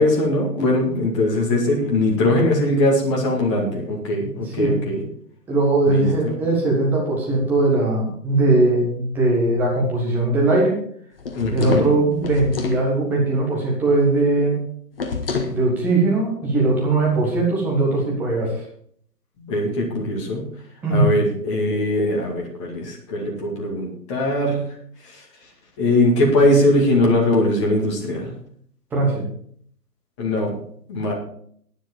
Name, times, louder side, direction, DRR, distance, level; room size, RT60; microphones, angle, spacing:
voice 1, 0.0-5.0 5.8-6.3 11.3-11.9 19.4-20.5 20.9-24.6 25.0-25.2 25.8-28.3 30.2-30.5 30.9-31.1, left 1 dB, 20° left, -1 dB, 2.3 m, -21 dB
voice 2, 5.5-10.8 11.5-14.6 15.5-18.6 20.8-21.1 28.9-29.3, right 2 dB, 5° right, -3 dB, 1.4 m, -20 dB
sound 1, 11.2-12.9 15.0-15.6, left 4 dB, 35° left, 1.6 m, -27 dB
11.5 x 9.8 x 5.0 m, 0.62 s
figure-of-eight pair, 140°, 48 cm